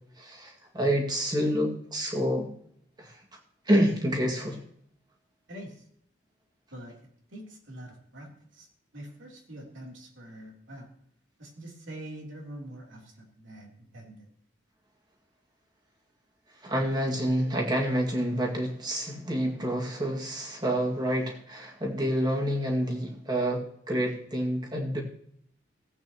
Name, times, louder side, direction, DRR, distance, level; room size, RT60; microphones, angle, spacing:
voice 1, 0.2-2.5 3.0-3.2 3.7-4.6 16.6-25.0, equal, 20° right, 0 dB, 2.1 m, -28 dB
voice 2, 5.5-5.8 6.7-6.9 7.3-8.7 8.9-10.9 11.4-14.3, right 1 dB, 80° right, 0 dB, 3.4 m, -44 dB
17.0 x 8.7 x 3.0 m, 0.69 s
head